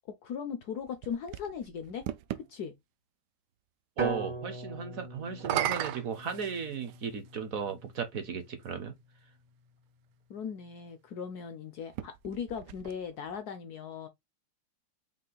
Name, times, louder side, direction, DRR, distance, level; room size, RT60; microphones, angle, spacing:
voice 1, 0.2-2.1 2.4-2.7 10.3-14.1, left 7 dB, 70° left, 0.9 m, -38 dB
sound 1, 0.6-2.5 5.3-7.1 8.0-8.1 11.8-13.4, right 13 dB, 85° right, 0.9 m, -36 dB
sound 2, 4.0-8.0, right 3 dB, 30° right, 0.5 m, -39 dB
voice 2, 4.0-8.9, right 6 dB, 60° right, 0.9 m, -36 dB
5.6 x 2.4 x 3.8 m
omnidirectional pair, 2.3 m